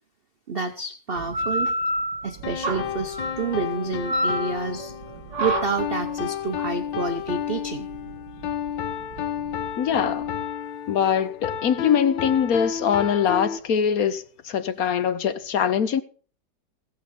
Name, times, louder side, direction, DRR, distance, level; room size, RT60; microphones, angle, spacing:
voice 1, 0.5-1.7 2.2-4.9 5.4-7.9, right 4 dB, 45° right, 0.7 m, -29 dB
sound 1, 1.1-10.3, right 1 dB, 75° right, 3.2 m, -30 dB
sound 2, 2.4-13.6, left 9 dB, 80° left, 1.6 m, -31 dB
voice 2, 9.8-10.3 10.9-16.0, left 8 dB, 60° left, 1.2 m, -23 dB
16.0 x 8.6 x 5.3 m
omnidirectional pair, 2.0 m